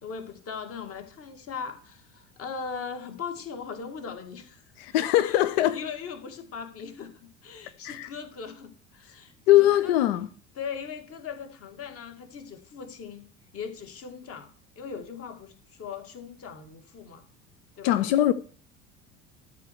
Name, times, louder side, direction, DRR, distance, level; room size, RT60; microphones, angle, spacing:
voice 1, 0.0-4.6 4.9-5.4 5.7-10.0 10.6-17.2 17.8-18.0, left 6 dB, 35° left, 2.2 m, -39 dB
voice 2, 4.8-5.8 7.8-8.1 9.5-10.3 17.8-18.3, left 14 dB, 55° left, 0.7 m, -21 dB
12.0 x 4.5 x 7.9 m
figure-of-eight pair, 70°, 38 cm